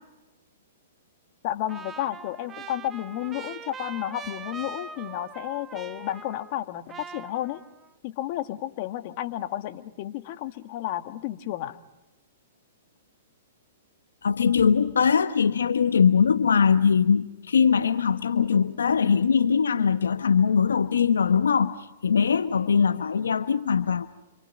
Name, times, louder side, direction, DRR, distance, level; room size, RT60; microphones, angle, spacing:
voice 1, 1.4-7.6 8.0-11.8, left 13 dB, 45° left, 1.5 m, -32 dB
Trumpet, 1.7-6.6 6.9-7.9, right 5 dB, 20° right, 1.0 m, -42 dB
voice 2, 14.2-24.1, left 6 dB, 85° left, 1.0 m, -21 dB
29.5 x 25.5 x 5.2 m
hypercardioid pair, 125°, 0 cm